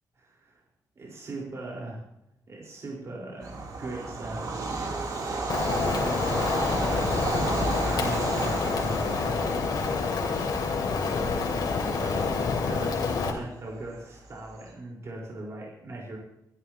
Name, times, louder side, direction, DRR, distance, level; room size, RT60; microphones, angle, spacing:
voice 1, 0.2-0.6 1.0-2.0 2.5-4.8 5.2-6.5 6.8-10.0 10.6-11.2 11.5-12.3 12.6-16.2, right 2 dB, 45° right, -3 dB, 4.7 m, -40 dB
Bird vocalization bird call bird song / Train, 3.4-14.6, right 3 dB, 65° right, 3.5 m, -33 dB
Rain, 5.5-13.3, left 4 dB, 75° left, 2.8 m, -28 dB
24.0 x 12.5 x 3.0 m, 0.80 s
wide cardioid pair, 150°, 7 cm